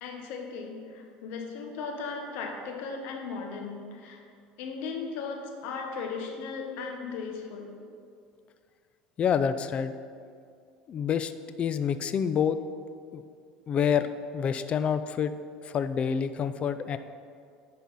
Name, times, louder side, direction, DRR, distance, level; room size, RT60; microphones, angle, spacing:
voice 1, 0.0-4.2 4.6-7.7, left 4 dB, 70° left, 2 dB, 1.4 m, -37 dB
voice 2, 9.2-9.9 10.9-11.3 11.6-12.6 13.1-13.2 13.7-14.1 14.3-15.3 15.6-17.0, left 7 dB, 35° left, 12 dB, 0.4 m, -27 dB
10.5 x 4.2 x 5.5 m, 2.3 s
supercardioid pair, 110°, 3 cm